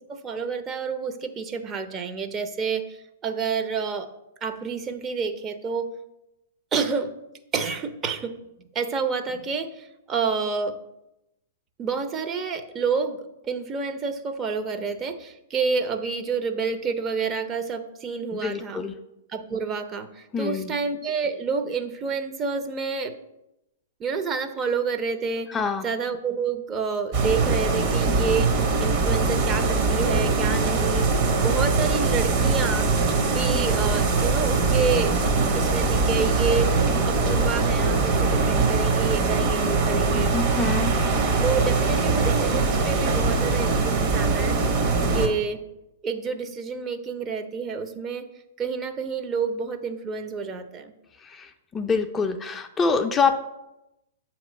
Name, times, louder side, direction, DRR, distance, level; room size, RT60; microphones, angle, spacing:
voice 1, 0.1-2.9 3.2-4.1 4.4-5.9 6.7-7.1 7.5-8.4 8.7-10.8 11.8-18.8 19.3-23.1 24.0-25.5 25.8-28.5 28.8-31.1 31.4-32.9 33.3-35.2 35.5-36.7 37.1-40.4 41.4-44.6 45.1-45.6 46.0-48.3 48.6-50.9, right 5 dB, 25° right, 7 dB, 0.6 m, -28 dB
voice 2, 18.3-18.9 20.3-20.7 25.5-25.9 40.3-40.9 51.2-53.4, left 5 dB, 15° left, 6 dB, 0.4 m, -25 dB
sound 1, 27.1-45.3, right 4 dB, 45° right, 1.1 m, -22 dB
7.5 x 3.0 x 5.3 m, 0.90 s
hypercardioid pair, 115°, 0 cm